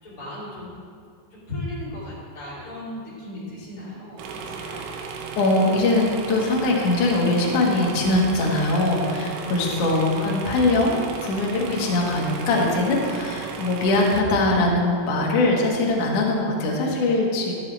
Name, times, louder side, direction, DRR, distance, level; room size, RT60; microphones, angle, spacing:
voice 1, 0.0-0.7 1.3-5.0 9.4-9.8, left 2 dB, 20° left, -11 dB, 2.7 m, -35 dB
sound 1, 4.2-14.2, right 5 dB, 85° right, 3.6 m, -35 dB
voice 2, 5.4-17.5, left 2 dB, 60° left, -2 dB, 2.1 m, -22 dB
13.5 x 10.5 x 3.5 m, 2.2 s
omnidirectional pair, 5.9 m